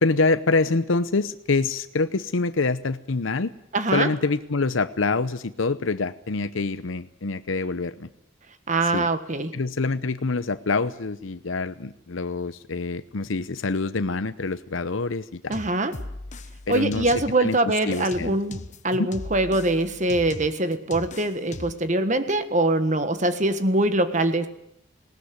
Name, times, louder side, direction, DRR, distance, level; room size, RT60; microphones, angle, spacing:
voice 1, 0.0-3.5 3.9-8.1 8.9-9.1 9.5-15.5 16.7-17.1 17.4-18.4 18.9-19.1, left 3 dB, 80° left, 12 dB, 0.8 m, -26 dB
voice 2, 3.7-4.1 8.7-9.5 15.5-15.9 16.7-24.5, right 2 dB, 40° right, 10 dB, 1.5 m, -23 dB
sound 1, 15.5-17.5 17.9-21.9, left 2 dB, 35° left, 1.1 m, -38 dB
20.0 x 18.5 x 9.5 m, 0.77 s
head